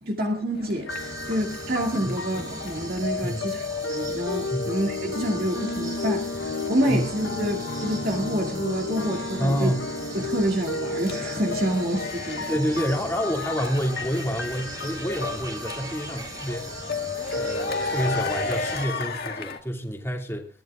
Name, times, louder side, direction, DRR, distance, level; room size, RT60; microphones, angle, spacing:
voice 1, 0.0-9.7 10.1-12.5, equal, 55° right, 2.3 m, -28 dB
sound 1, 0.5-19.6, left 3 dB, 60° left, 1.9 m, -37 dB
sound 2, 0.9-18.5, left 3 dB, 90° left, 1.1 m, -33 dB
sound 3, 0.9-18.9, right 3 dB, 20° right, 2.6 m, -41 dB
voice 2, 9.4-9.8 12.5-16.9 17.3-20.5, equal, 15° left, 2.4 m, -28 dB
23.5 x 14.0 x 2.5 m
head